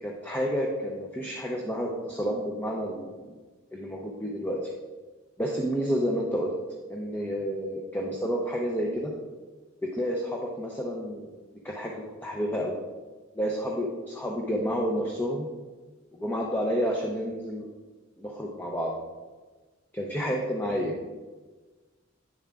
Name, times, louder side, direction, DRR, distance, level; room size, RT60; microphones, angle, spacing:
voice 1, 0.0-3.3 3.7-4.7 5.4-6.5 6.9-9.1 9.9-11.3 11.6-11.9 12.2-12.8 13.4-15.5 16.1-17.7 18.2-18.9 19.9-20.9, equal, 10° left, -1 dB, 0.6 m, -30 dB
9.3 x 7.1 x 2.4 m, 1.3 s
head